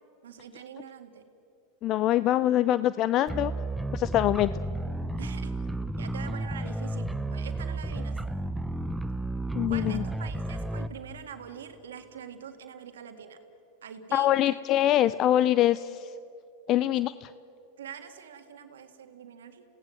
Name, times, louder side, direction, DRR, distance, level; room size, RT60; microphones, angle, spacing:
voice 1, 0.2-1.2 5.2-5.5 6.0-8.2 9.7-13.4 13.8-14.5 14.8-14.9 17.8-19.6, right 8 dB, 90° right, 6 dB, 1.9 m, -44 dB
voice 2, 1.8-3.5 3.9-4.5 9.5-10.0 14.1-16.1 16.7-17.3, left 13 dB, 45° left, 16 dB, 0.4 m, -24 dB
sound 1, 3.3-10.9, right 2 dB, 5° right, 0.7 m, -32 dB
28.5 x 17.5 x 7.7 m, 2.8 s
hypercardioid pair, 105°, 0 cm